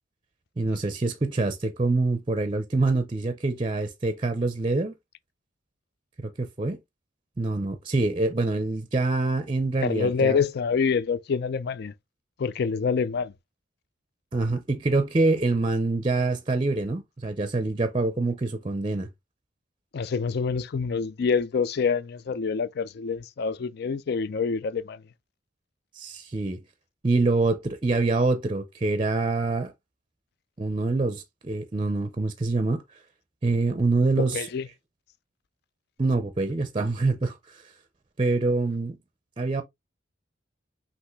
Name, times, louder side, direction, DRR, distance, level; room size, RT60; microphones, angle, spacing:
voice 1, 0.6-4.9 6.2-6.8 7.4-10.4 14.3-19.1 26.0-26.6 27.0-29.7 30.6-32.8 33.4-34.5 36.0-37.7 38.2-39.0 39.4-39.6, right 3 dB, 25° right, 0.5 m, -25 dB
voice 2, 9.8-11.9 12.4-13.3 19.9-25.0 34.3-34.7, left 5 dB, 55° left, 0.4 m, -26 dB
5.6 x 2.8 x 3.0 m
head